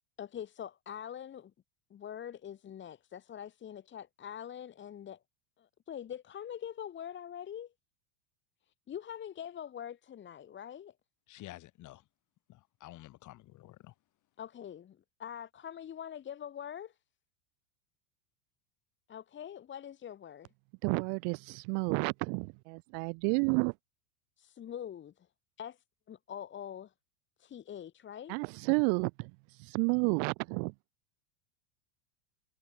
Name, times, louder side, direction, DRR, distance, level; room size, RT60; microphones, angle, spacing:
voice 1, 0.2-1.5 1.9-5.2 5.6-7.7 8.9-10.9 14.4-17.0 19.1-20.5 24.4-25.3 25.6-26.9 27.4-28.4, left 9 dB, 25° left, 2.0 m, -44 dB
voice 2, 11.3-12.0 12.5-13.9, left 16 dB, 45° left, 6.5 m, -50 dB
voice 3, 20.8-23.7 28.3-29.3 29.6-30.7, right 40 dB or more, 50° right, 0.6 m, -30 dB
supercardioid pair, 125°, 42 cm